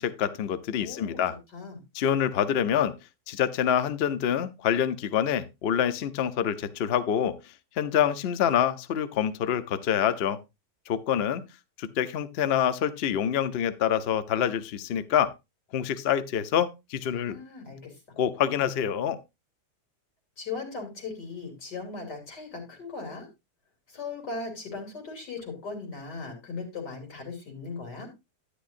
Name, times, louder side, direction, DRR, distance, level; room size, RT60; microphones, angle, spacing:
voice 1, 0.0-1.3 1.9-2.9 3.3-10.4 10.9-11.4 11.8-15.3 15.7-17.4 18.2-19.2, left 9 dB, 60° left, 0.6 m, -26 dB
voice 2, 0.8-1.2 1.5-1.8 17.3-18.0 20.4-23.3 23.9-28.1, left 4 dB, 85° left, 3.4 m, -38 dB
10.0 x 10.0 x 2.5 m
omnidirectional pair, 1.8 m